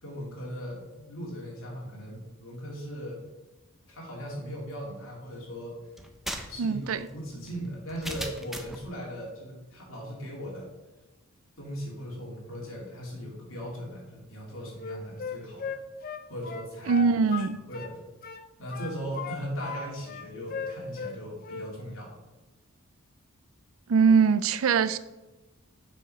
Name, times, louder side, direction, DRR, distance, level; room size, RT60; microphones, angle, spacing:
voice 1, 0.0-3.2 3.9-5.7 6.5-10.7 11.6-15.7 16.3-17.0 17.7-18.0 18.6-22.2, equal, 65° left, 2.8 m, -38 dB
sound 1, 6.0-8.9, equal, ahead, 0.6 m, -38 dB
voice 2, 6.6-7.1 16.9-17.6 23.9-25.0, right 5 dB, 70° right, 0.4 m, -22 dB
Wind instrument woodwind instrument, 14.8-17.9 18.2-19.8 20.1-21.2 21.4-21.7, left 5 dB, 40° left, 0.5 m, -37 dB
7.2 x 5.0 x 5.6 m
head